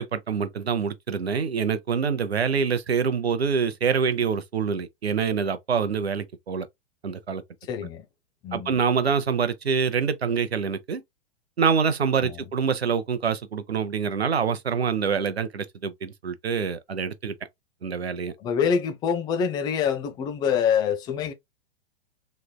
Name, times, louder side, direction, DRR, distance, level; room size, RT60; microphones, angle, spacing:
voice 1, 0.0-6.7 7.0-7.4 8.5-11.0 11.6-17.3 17.8-18.3, right 6 dB, 80° right, 0.7 m, -25 dB
voice 2, 7.7-8.0 8.4-8.8 12.2-12.4 18.4-21.3, left 7 dB, 15° left, 0.4 m, -25 dB
3.3 x 3.1 x 2.2 m
figure-of-eight pair, 105°, 31 cm